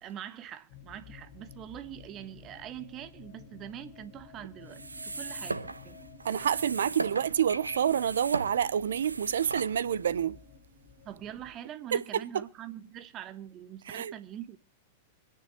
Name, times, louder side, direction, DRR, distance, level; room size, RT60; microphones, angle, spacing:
voice 1, 0.0-6.0 11.0-14.6, right 11 dB, 35° right, 1.3 m, -44 dB
sound 1, 0.7-11.5, left 5 dB, 50° left, 5.1 m, -52 dB
sound 2, 4.7-10.1, right 3 dB, 85° right, 1.0 m, -38 dB
voice 2, 6.2-10.4 11.9-12.4 13.9-14.1, right 8 dB, 70° right, 0.7 m, -28 dB
25.5 x 9.8 x 2.9 m
figure-of-eight pair, 95°, 0 cm